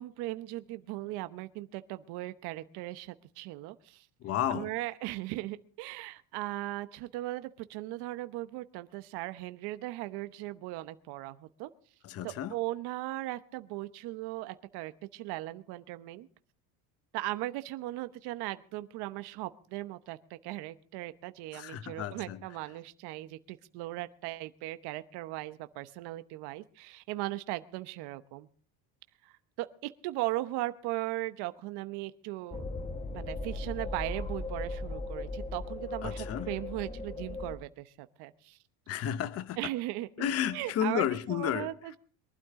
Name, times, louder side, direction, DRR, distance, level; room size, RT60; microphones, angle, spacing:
voice 1, 0.0-4.1 4.5-11.7 12.2-16.3 17.1-28.5 29.2-32.6 33.1-38.6 39.6-40.3 40.5-42.0, right 17 dB, 60° right, 12 dB, 1.0 m, -38 dB
voice 2, 4.2-4.7 12.0-12.5 21.5-22.4 36.0-36.5 38.9-39.7 40.2-42.0, left 10 dB, 35° left, 15 dB, 0.8 m, -32 dB
sound 1, 32.5-37.6, left 2 dB, 15° left, 1.0 m, -37 dB
23.0 x 12.0 x 3.7 m, 0.44 s
cardioid pair, 150°, 44 cm